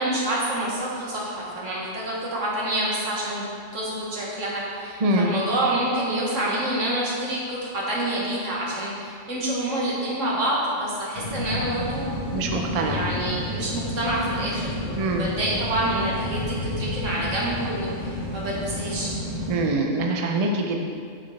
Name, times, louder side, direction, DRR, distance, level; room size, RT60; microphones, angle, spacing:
voice 1, 0.0-12.1 12.8-19.1, right 1 dB, 85° right, -5 dB, 1.9 m, -27 dB
voice 2, 5.0-5.3 12.3-13.0 15.0-15.3 19.5-20.8, right 2 dB, 40° right, 2 dB, 0.5 m, -24 dB
sound 1, 11.1-19.6, left 1 dB, 60° left, 1.5 m, -31 dB
7.6 x 6.3 x 3.3 m, 2.3 s
omnidirectional pair, 1.3 m